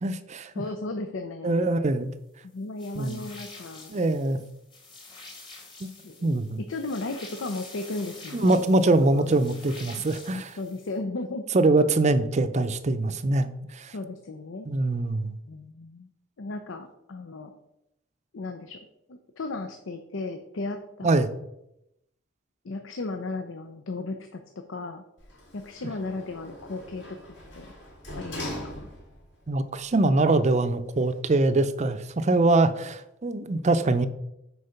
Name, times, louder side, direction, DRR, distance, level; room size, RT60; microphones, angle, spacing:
voice 1, 0.0-0.5 1.4-2.1 3.0-3.2 3.9-4.4 5.8-5.9 6.2-6.6 8.3-10.6 11.5-13.9 14.7-15.4 21.0-21.3 29.5-34.1, right 2 dB, 35° right, 11 dB, 0.5 m, -23 dB
voice 2, 0.6-1.7 2.4-3.9 6.0-6.4 6.7-8.6 9.0-9.3 10.3-11.4 13.9-14.7 15.5-16.1 16.4-17.5 18.3-18.8 19.1-21.2 22.6-25.0 25.5-27.2 27.5-27.7 28.2-28.9, left 2 dB, 80° left, 7 dB, 0.6 m, -35 dB
sound 1, 2.8-11.0, left 3 dB, 25° left, 1.6 m, -47 dB
Sliding door, 25.2-29.3 29.8-29.9, left 1 dB, 65° left, 2.8 m, -40 dB
6.5 x 4.7 x 5.7 m, 0.84 s
head